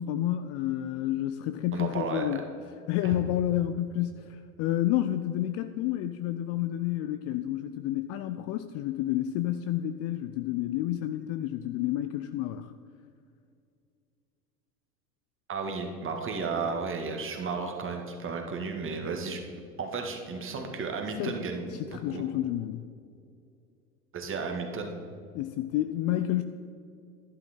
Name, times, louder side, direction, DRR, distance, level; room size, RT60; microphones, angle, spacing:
voice 1, 0.0-2.4 2.9-12.7 21.2-21.4 21.7-22.8 25.3-26.4, left 13 dB, 35° left, 10 dB, 0.4 m, -30 dB
voice 2, 1.7-2.4 3.0-3.2 15.5-19.4 19.8-22.3 24.1-24.9, right 4 dB, 25° right, 3 dB, 1.9 m, -33 dB
11.5 x 11.0 x 4.4 m, 2.5 s
figure-of-eight pair, 80°, 45 cm